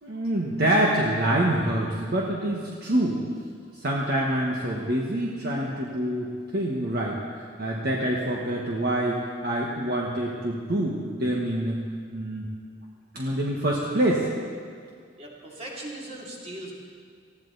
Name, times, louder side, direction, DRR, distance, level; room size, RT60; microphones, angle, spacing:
voice 1, 0.0-3.2 3.8-11.8 12.1-12.4 13.1-14.3, right 1 dB, 55° right, -2 dB, 1.4 m, -26 dB
voice 2, 15.2-16.7, right 1 dB, 35° right, -3 dB, 2.9 m, -39 dB
19.5 x 15.0 x 4.1 m, 2.1 s
head